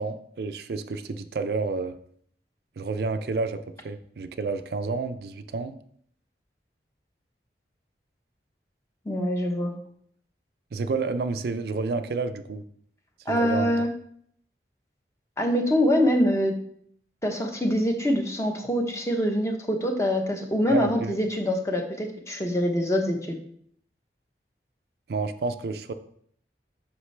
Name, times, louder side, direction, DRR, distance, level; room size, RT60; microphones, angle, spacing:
voice 1, 0.0-2.0 2.8-5.7 10.7-12.6 13.3-13.7 20.7-21.2 25.1-25.9, right 4 dB, 60° right, 9 dB, 0.4 m, -30 dB
voice 2, 9.1-9.7 13.3-13.9 15.4-16.5 17.2-23.4, equal, 15° left, 3 dB, 0.8 m, -24 dB
8.0 x 5.6 x 3.3 m, 0.65 s
head